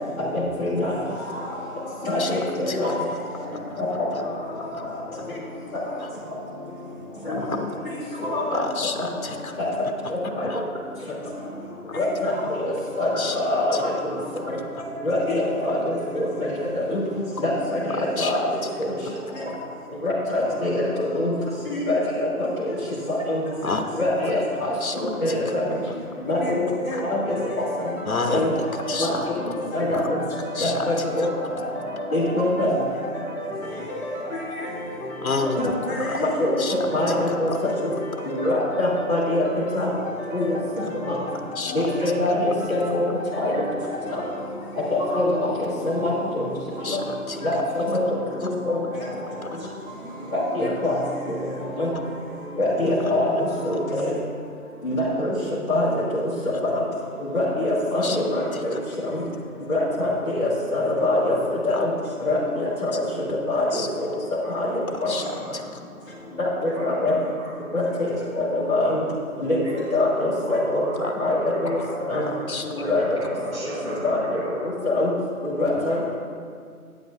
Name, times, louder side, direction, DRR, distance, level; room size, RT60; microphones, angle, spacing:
voice 1, 0.6-0.9 2.0-2.9 7.3-7.4 8.2-8.4 10.4-10.5 12.0-12.6 13.0-13.9 15.0-15.8 16.1-16.3 16.9-17.0 17.4-18.4 18.8-18.9 20.0-21.3 21.7-22.3 23.1-23.4 24.0-24.7 24.9-25.6 26.3-27.4 28.3-28.5 29.0-29.1 29.7-30.2 30.6-31.3 32.1-32.7 35.6-36.6 36.9-37.5 38.2-39.4 39.7-39.9 40.3-40.6 41.7-43.0 43.4-43.5 44.9-46.4 47.4-48.0 48.4-48.8 50.3-50.9 51.8-51.9 52.6-53.3 53.6-54.1 54.8-55.3 55.7-56.0 56.4-56.8 57.3-58.4 58.7-58.8 59.1-59.2 59.7-61.3 61.6-61.9 62.2-62.9 63.5-64.1 64.5-64.7 65.0-65.1 66.4-67.1 67.7-69.0 69.4-70.8 71.2-71.8 72.1-72.2 72.8-73.0 74.0-74.4 74.8-75.1 75.4-76.1, left 1 dB, 15° left, -15 dB, 1.9 m, -24 dB
voice 2, 2.7-3.0 3.7-4.2 4.7-4.8 6.0-6.1 7.3-7.7 8.5-9.6 10.5-10.6 11.9-12.0 13.2-13.4 13.7-13.8 14.3-14.4 17.9-18.4 23.6-23.9 24.2-24.3 24.8-25.0 25.3-25.5 25.9-26.0 26.9-27.0 28.0-28.5 28.9-29.4 29.9-30.1 30.5-31.3 35.2-36.2 36.6-36.8 37.1-37.6 41.5-41.7 46.8-47.4 48.2-48.3 49.4-49.7 53.0-53.1 58.0-58.2 58.5-58.8 61.7-61.8 63.7-63.9 65.1-65.6 71.0-71.1 71.6-72.0 72.5-72.7 75.8-75.9, left 4 dB, 70° left, 5 dB, 0.9 m, -31 dB
sound 1, 27.1-44.5, left 1 dB, 45° left, 1.3 m, -35 dB
voice 3, 64.8-65.6 66.7-68.3 68.8-69.0 69.6-72.5 72.7-74.5, right 1 dB, 20° right, -11 dB, 2.4 m, -36 dB
11.0 x 9.2 x 2.6 m, 2.1 s
figure-of-eight pair, 160°, 44 cm